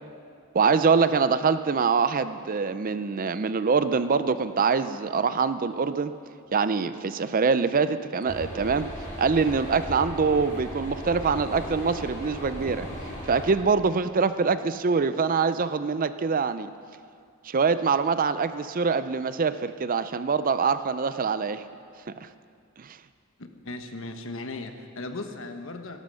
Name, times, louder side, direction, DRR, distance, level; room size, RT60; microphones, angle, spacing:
voice 1, 0.5-6.1 6.5-8.9 9.2-12.9 13.3-16.7 17.4-21.6 22.8-23.0, right 5 dB, 40° right, 12 dB, 0.5 m, -24 dB
sound 1, 8.3-13.5, equal, 40° left, 4.9 m, -37 dB
voice 2, 23.4-26.0, left 2 dB, 65° left, 6 dB, 1.3 m, -37 dB
19.0 x 11.5 x 6.5 m, 2.3 s
head